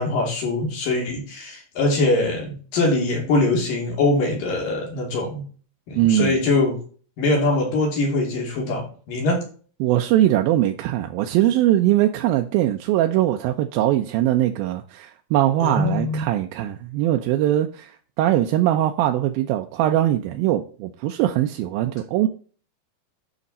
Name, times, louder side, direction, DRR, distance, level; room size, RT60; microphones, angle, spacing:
voice 1, 0.0-5.4 5.9-6.8 7.2-9.4 15.6-16.3, left 2 dB, 70° left, 4.6 m, -22 dB
voice 2, 6.0-6.4 9.8-22.3, right 13 dB, 85° right, 2.5 m, -21 dB
9.8 x 6.4 x 4.2 m
omnidirectional pair, 4.1 m